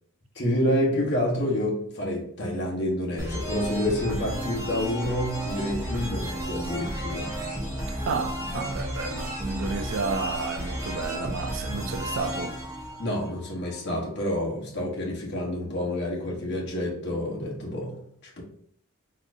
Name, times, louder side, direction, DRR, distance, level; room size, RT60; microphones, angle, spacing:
voice 1, 0.3-7.4 13.0-18.4, left 1 dB, 50° left, 1.0 m, -28 dB
sound 1, 3.2-13.8, right 1 dB, 15° right, 0.7 m, -33 dB
voice 2, 8.1-12.6, right 4 dB, 60° right, 0.4 m, -31 dB
4.2 x 2.6 x 2.5 m
head